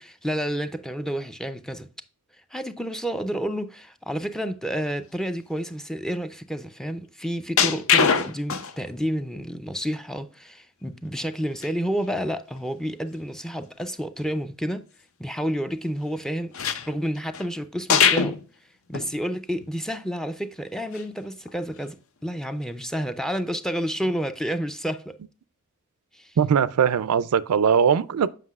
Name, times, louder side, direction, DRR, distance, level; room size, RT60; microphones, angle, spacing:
voice 1, 0.0-1.9 2.5-14.9 15.2-16.6 16.9-18.4 18.9-25.2 26.1-26.4, equal, ahead, 0.4 m, -30 dB
sound 1, 7.6-8.9 9.3-9.4 11.6-11.7 12.0-12.1 12.6-12.7 16.5-17.5 17.9-18.4 18.9-19.1 19.6-19.7 20.9-21.0 21.5-21.8 24.0-24.2, left 7 dB, 65° left, 0.6 m, -23 dB
voice 2, 26.4-28.3, right 7 dB, 80° right, 0.4 m, -20 dB
7.5 x 5.8 x 2.3 m
head